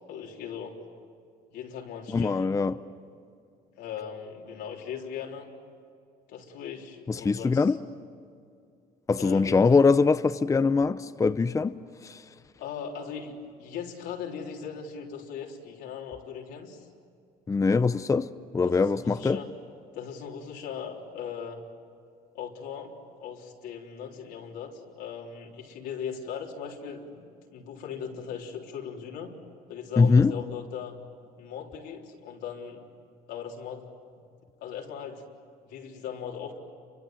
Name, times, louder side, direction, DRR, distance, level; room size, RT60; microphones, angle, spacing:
voice 1, 0.1-0.8 1.5-2.5 3.8-5.5 6.3-7.8 9.2-9.8 12.6-16.9 18.6-19.5 19.9-21.6 22.3-23.0 23.2-27.2 27.5-29.3 29.7-30.9 31.4-32.8 33.3-33.9 34.6-35.2 35.6-36.5, left 7 dB, 85° left, 3.8 m, -38 dB
voice 2, 2.1-2.7 7.1-7.8 9.1-11.7 12.0-12.2 17.5-19.4 30.0-30.3, left 4 dB, 20° left, 0.6 m, -22 dB
29.5 x 24.5 x 7.8 m
cardioid pair, 110°, 17 cm